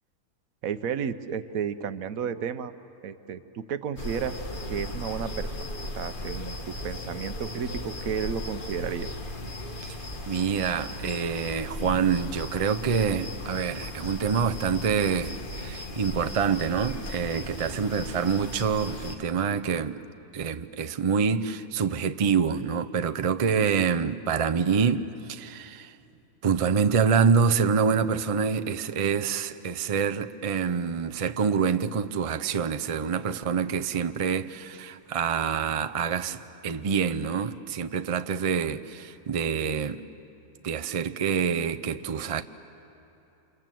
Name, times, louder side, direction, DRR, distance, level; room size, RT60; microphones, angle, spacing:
voice 1, 0.6-2.7 3.0-4.4 4.7-5.7 6.0-9.1, right 7 dB, 70° right, 1.2 m, -32 dB
sound 1, 4.0-19.2, left 1 dB, 35° left, 1.4 m, -37 dB
voice 2, 10.3-20.0 20.3-25.9 26.4-40.0 40.6-42.4, right 6 dB, 55° right, 0.3 m, -26 dB
29.0 x 27.0 x 7.7 m
omnidirectional pair, 1.6 m